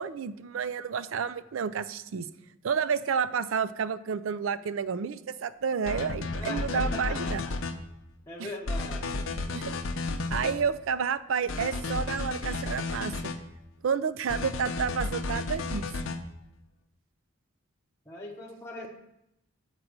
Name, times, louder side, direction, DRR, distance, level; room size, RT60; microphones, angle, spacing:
voice 1, 0.0-2.3 2.6-7.4 8.4-8.5 9.5-9.7 10.3-13.1 13.8-15.9, right 6 dB, 85° right, 15 dB, 0.4 m, -30 dB
sound 1, 5.9-7.7 8.7-10.6 11.5-13.4 14.3-16.2, left 3 dB, 85° left, 0.7 m, -32 dB
voice 2, 6.4-7.5 8.3-9.2 18.1-18.9, left 1 dB, 15° left, -4 dB, 0.9 m, -40 dB
7.3 x 4.8 x 6.4 m, 0.86 s
head